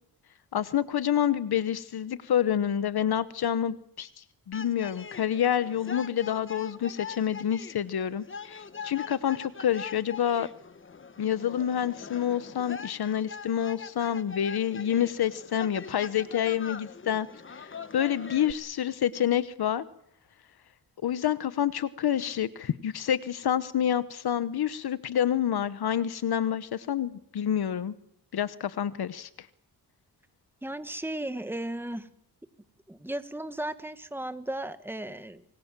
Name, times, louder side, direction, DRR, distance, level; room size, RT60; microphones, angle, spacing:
voice 1, 0.5-10.5 11.2-19.8 21.0-27.9 28.3-29.3, left 10 dB, 75° left, 15 dB, 1.1 m, -28 dB
sound 1, 4.5-18.5, left 5 dB, 30° left, 1.2 m, -42 dB
voice 2, 30.6-32.1 32.9-35.4, right 1 dB, 5° right, 10 dB, 1.5 m, -35 dB
26.5 x 23.5 x 7.5 m, 0.72 s
wide cardioid pair, 130°, 38 cm